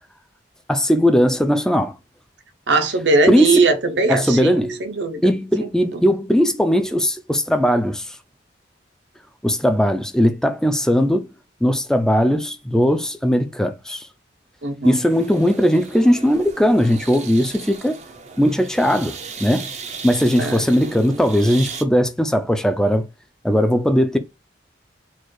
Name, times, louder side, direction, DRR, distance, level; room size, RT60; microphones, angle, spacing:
voice 1, 0.7-2.0 3.3-3.7 4.1-4.9 5.2-8.1 9.4-11.3 11.6-14.1 14.8-18.0 18.4-19.1 19.4-19.7 20.0-23.1 23.4-24.2, equal, 5° left, 0.5 m, -18 dB
voice 2, 2.7-5.2 5.6-6.0 14.6-15.0 20.4-20.6, right 3 dB, 70° right, 0.8 m, -20 dB
sound 1, 14.8-21.8, right 5 dB, 40° right, 0.6 m, -37 dB
4.4 x 2.5 x 4.6 m
head